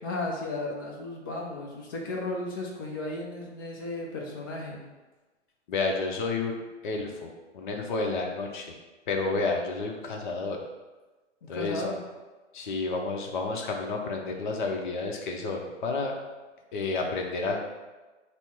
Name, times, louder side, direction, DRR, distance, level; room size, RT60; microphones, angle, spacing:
voice 1, 0.0-4.8 11.5-12.0, left 2 dB, 20° left, -1 dB, 0.3 m, -34 dB
voice 2, 5.7-8.7 9.1-10.6 11.5-11.9 12.5-16.2 16.7-17.6, left 3 dB, 40° left, 2 dB, 0.7 m, -30 dB
4.1 x 2.1 x 4.5 m, 1.2 s
figure-of-eight pair, 120°, 36 cm